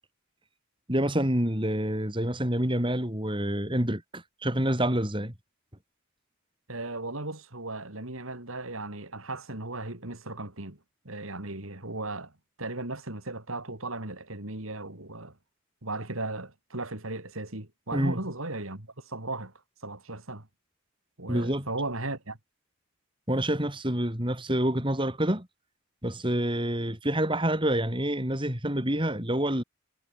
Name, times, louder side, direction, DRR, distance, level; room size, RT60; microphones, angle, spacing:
voice 1, 0.9-5.3 17.9-18.2 21.3-21.7 23.3-25.5 26.0-29.6, right 1 dB, 20° right, 4.0 m, -27 dB
voice 2, 6.7-10.8 11.1-12.3 12.6-15.4 15.8-19.5 19.8-20.5 21.2-22.4, right 2 dB, 70° right, 3.6 m, -36 dB
head